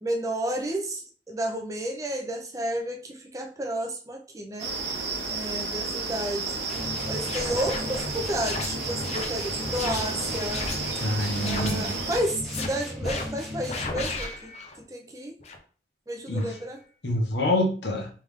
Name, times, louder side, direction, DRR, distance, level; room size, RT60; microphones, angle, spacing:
voice 1, 0.0-4.7 5.3-6.7 7.1-10.7 11.4-14.5 14.9-15.4 16.1-16.8, right 1 dB, 20° right, 0.5 m, -31 dB
sound 1, 4.6-12.2, right 3 dB, 70° right, 0.9 m, -32 dB
sound 2, 6.7-14.2, left 1 dB, ahead, 0.9 m, -37 dB
sound 3, 7.2-10.9 11.3-11.8 12.3-12.7 13.0-13.3 13.7-14.8 15.4-15.6 16.3-16.6, left 3 dB, 35° left, 0.6 m, -35 dB
voice 2, 11.0-11.9 16.3-16.5 17.0-18.1, left 1 dB, 70° left, 1.1 m, -26 dB
3.5 x 3.3 x 3.5 m
head